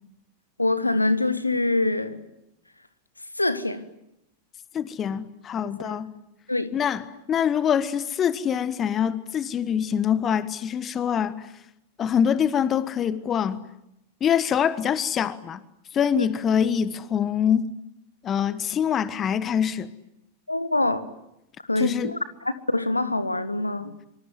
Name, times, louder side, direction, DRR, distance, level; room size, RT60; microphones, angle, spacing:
voice 1, 0.6-2.2 3.4-3.8 5.8-6.0 6.5-6.7 16.1-16.3 20.5-21.0 21.7-22.2 22.7-23.9, left 2 dB, 85° left, 1.4 m, -24 dB
voice 2, 4.7-6.1 6.7-11.5 12.0-13.6 14.2-15.6 15.9-17.7 18.2-19.9 21.8-22.1, left 8 dB, 25° left, 1.4 m, -24 dB
25.0 x 25.0 x 9.4 m
figure-of-eight pair, 90°, 0 cm